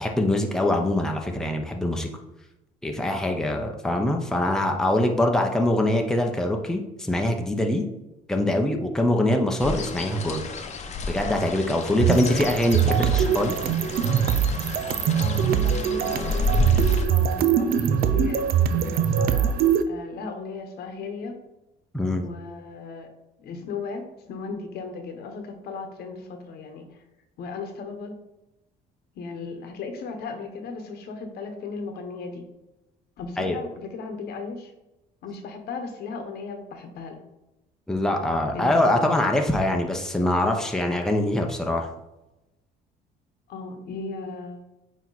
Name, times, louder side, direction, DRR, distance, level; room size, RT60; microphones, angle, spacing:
voice 1, 0.0-2.1 2.8-7.8 8.3-10.4 11.1-13.6 21.9-22.2 33.4-33.6 37.9-41.9, left 1 dB, 5° left, 2 dB, 0.8 m, -23 dB
sound 1, 9.6-17.1, left 3 dB, 40° left, 0.9 m, -31 dB
sound 2, 12.0-19.8, right 8 dB, 65° right, 0.6 m, -22 dB
voice 2, 15.2-19.6 19.9-21.4 22.2-23.1 23.4-27.0 27.4-28.2 29.1-32.5 33.2-34.7 35.2-37.2 38.5-38.9 43.5-44.6, left 4 dB, 70° left, 6 dB, 1.1 m, -36 dB
8.9 x 3.0 x 4.0 m, 0.96 s
cardioid pair, 110°, 17 cm